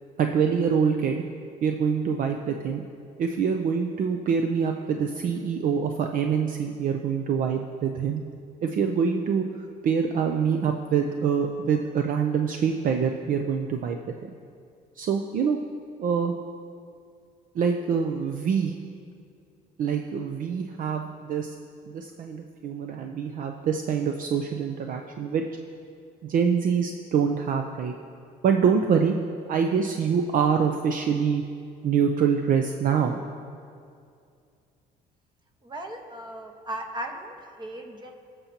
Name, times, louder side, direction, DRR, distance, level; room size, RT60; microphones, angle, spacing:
voice 1, 0.2-1.2 1.6-2.8 3.2-8.2 8.6-9.4 9.8-14.0 15.0-15.6 16.0-16.3 17.5-18.7 19.8-21.6 21.9-25.4 26.2-27.9 28.4-29.2 29.5-31.4 31.8-33.2, right 6 dB, 55° right, 4 dB, 0.5 m, -25 dB
voice 2, 35.6-38.2, right 1 dB, 25° right, 3 dB, 1.2 m, -37 dB
20.0 x 6.8 x 2.9 m, 2.4 s
cardioid pair, 110°, 17 cm